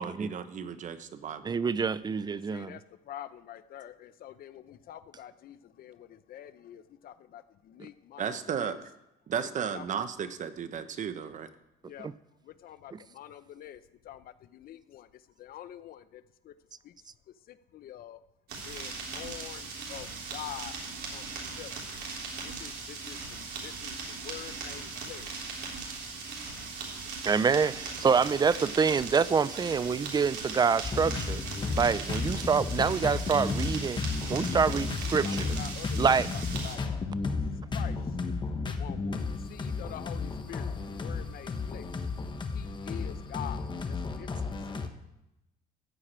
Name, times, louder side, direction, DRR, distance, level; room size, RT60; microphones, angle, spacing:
voice 1, 0.0-1.6 8.2-8.8 9.3-11.5, right 7 dB, 45° right, 10 dB, 1.0 m, -34 dB
voice 2, 1.4-2.8 12.0-12.1 12.9-13.0 27.3-31.4 31.8-35.6 36.0-36.3, right 5 dB, 25° right, 17 dB, 0.5 m, -26 dB
voice 3, 2.3-8.8 9.4-9.9 11.8-12.1 12.4-16.5 16.8-16.9 17.3-18.2 18.6-20.8 21.1-21.2 21.6-21.7 22.4-25.3 34.7-36.0 36.3-37.1 37.4-38.2 38.7-41.9 42.5-44.3, left 11 dB, 60° left, 13 dB, 0.8 m, -46 dB
sound 1, 18.5-36.7, right 4 dB, 70° right, 3.6 m, -39 dB
sound 2, 30.8-44.9, left 4 dB, 25° left, 1.1 m, -33 dB
14.5 x 4.9 x 8.8 m, 0.91 s
cardioid pair, 110°, 17 cm